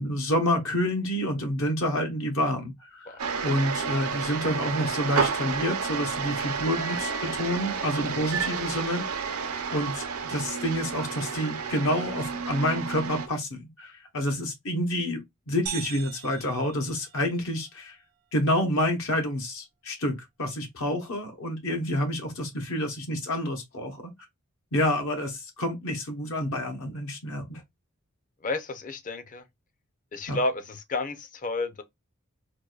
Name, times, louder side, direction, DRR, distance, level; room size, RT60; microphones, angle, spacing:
voice 1, 0.0-9.4 9.7-18.0 18.3-24.0 24.7-27.6 30.3-30.4, left 1 dB, 65° left, 0.8 m, -28 dB
sound 1, 3.2-13.3, right 5 dB, 85° right, 0.7 m, -31 dB
sound 2, 15.7-17.6, right 10 dB, 45° right, 0.4 m, -40 dB
voice 2, 28.4-29.5 30.1-31.8, left 2 dB, 40° left, 0.5 m, -31 dB
4.6 x 2.2 x 2.3 m
head